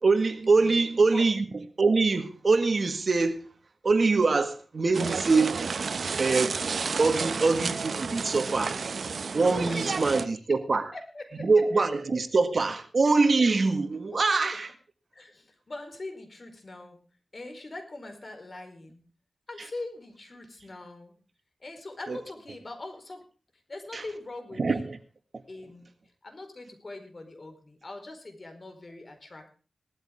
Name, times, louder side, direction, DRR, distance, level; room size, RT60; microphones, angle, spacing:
voice 1, 0.0-1.4 1.8-3.5 3.8-5.6 6.2-6.6 7.0-8.8 9.3-10.9 11.4-14.7 22.1-22.2 23.9-24.0 24.6-25.0, right 3 dB, 50° right, 1.7 m, -24 dB
voice 2, 0.6-1.3 9.6-10.3 10.7-11.5 14.1-14.2 15.1-17.0 17.3-19.0 19.5-21.1 21.6-23.3 23.7-24.9 25.5-25.9 26.2-29.5, left 2 dB, 40° left, 4.7 m, -42 dB
sound 1, 4.9-10.3, right 5 dB, 70° right, 0.8 m, -31 dB
18.5 x 13.5 x 3.6 m
wide cardioid pair, 90°, 0 cm